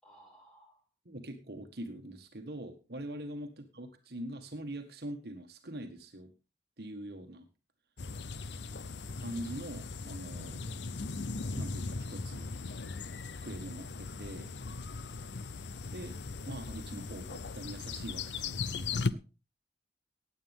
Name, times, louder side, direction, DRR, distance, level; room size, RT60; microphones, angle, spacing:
voice 1, 0.0-0.9, right 1 dB, 5° left, 0 dB, 5.0 m, -62 dB
voice 2, 1.0-6.3 6.8-7.5 9.2-10.6 11.5-12.5 13.4-14.5 15.8-16.2 16.4-19.2, right 1 dB, 60° right, 5 dB, 1.6 m, -43 dB
sound 1, 8.0-19.1, left 4 dB, 75° left, 0.7 m, -38 dB
16.5 x 9.4 x 3.6 m, 0.31 s
head